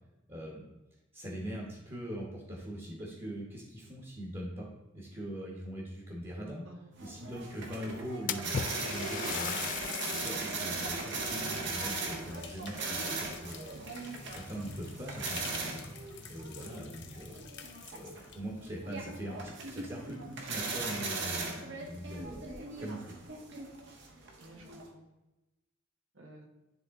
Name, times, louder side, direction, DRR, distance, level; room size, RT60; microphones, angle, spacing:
voice 1, 0.3-0.7 1.1-4.7 4.9-6.7 7.0-13.8 14.3-15.9 16.3-17.4 17.9-21.6 21.9-23.1, equal, 30° right, -3 dB, 1.2 m, -42 dB
voice 2, 6.6-7.2 14.0-14.3 21.6-22.0 24.4-25.1 26.1-26.5, right 1 dB, 90° right, 2 dB, 1.3 m, -54 dB
sound 1, 7.0-24.9, right 3 dB, 60° right, 1.2 m, -39 dB
Splash splatter, 8.3-10.6 11.1-11.2 12.1-13.1 13.5-13.9 14.7-14.8 15.3-15.4 17.6-17.7 18.0-18.1 18.7-18.8 19.2-19.3 20.0-20.6, left 8 dB, 40° left, 0.3 m, -38 dB
sound 2, 8.6-18.4, left 8 dB, 60° left, 0.7 m, -51 dB
10.0 x 3.7 x 3.7 m, 1.0 s
head